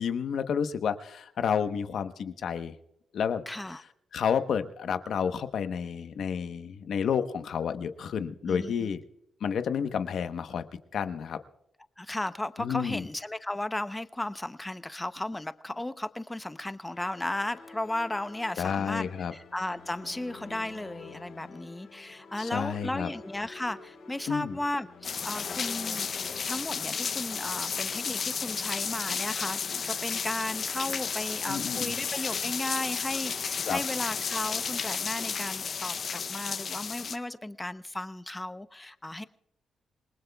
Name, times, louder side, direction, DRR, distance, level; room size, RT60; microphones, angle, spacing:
voice 1, 0.0-2.8 3.1-3.4 4.1-9.0 9.4-10.6 10.9-11.4 12.6-13.0 18.6-19.3 22.4-23.1 24.3-24.6 31.5-31.9 33.6-33.8, left 7 dB, 70° left, 9 dB, 1.0 m, -30 dB
voice 2, 3.5-3.8 8.4-9.0 12.0-19.1 19.3-26.1 26.5-39.2, left 1 dB, 15° left, 12 dB, 0.7 m, -35 dB
sound 1, 16.9-26.4, left 4 dB, 85° left, 3.5 m, -49 dB
sound 2, 25.0-37.2, left 6 dB, 55° left, 0.6 m, -33 dB
27.5 x 19.5 x 2.3 m, 0.78 s
cardioid pair, 90°, 0 cm